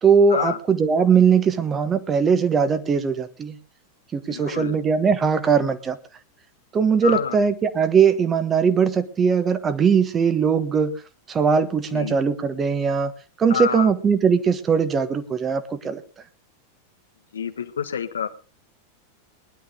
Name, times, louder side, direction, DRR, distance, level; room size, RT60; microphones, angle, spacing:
voice 1, 0.0-3.6 4.1-6.0 6.7-10.9 11.3-13.1 13.4-16.0, right 6 dB, 20° right, 10 dB, 1.3 m, -20 dB
voice 2, 4.3-4.8 7.0-7.4 11.9-12.2 13.5-13.9 17.3-18.3, left 8 dB, 70° left, 8 dB, 1.3 m, -27 dB
19.5 x 11.0 x 3.8 m, 0.35 s
figure-of-eight pair, 90°, 0 cm